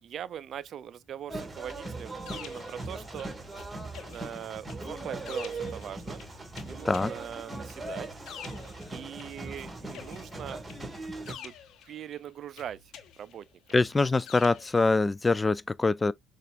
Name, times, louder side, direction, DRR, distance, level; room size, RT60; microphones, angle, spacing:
voice 1, 0.0-3.3 3.8-6.2 6.6-8.1 8.9-10.6 11.3-11.5 11.9-13.5, right 9 dB, 55° right, 0.4 m, -41 dB
sound 1, 1.3-11.3, right 2 dB, 15° right, 2.0 m, -39 dB
sound 2, 1.7-3.6 3.9-9.6 9.9-12.2 12.6-14.8, left 8 dB, 65° left, 0.8 m, -48 dB
voice 2, 13.7-16.1, left 3 dB, 25° left, 0.3 m, -24 dB
6.6 x 2.4 x 2.4 m
hypercardioid pair, 60°, 0 cm